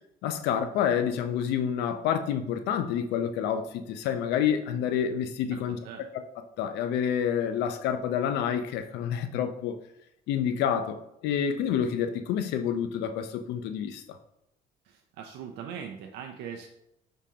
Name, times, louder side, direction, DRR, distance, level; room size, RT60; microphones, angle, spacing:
voice 1, 0.2-5.8 6.6-9.7 10.3-11.0 11.2-14.2, left 8 dB, 85° left, 0.5 m, -28 dB
voice 2, 5.5-6.0 14.9-16.7, right 7 dB, 80° right, 0.5 m, -41 dB
4.9 x 3.7 x 2.8 m
cardioid pair, 110°, 17 cm